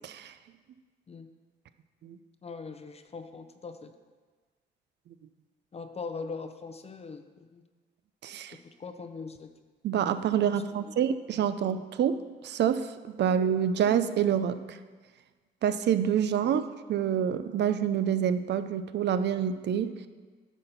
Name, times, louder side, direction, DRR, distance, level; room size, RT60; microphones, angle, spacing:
voice 1, 0.0-0.3 2.0-2.2 8.2-8.6 9.8-12.2 12.4-12.9 13.2-14.8 15.6-16.6 16.9-19.9, right 8 dB, 60° right, 11 dB, 0.5 m, -27 dB
voice 2, 2.4-3.9 5.7-7.6 8.6-9.5 10.8-10.9 16.4-16.6, left 4 dB, 30° left, 9 dB, 0.6 m, -41 dB
9.8 x 4.2 x 6.7 m, 1.4 s
cardioid pair, 90°, 20 cm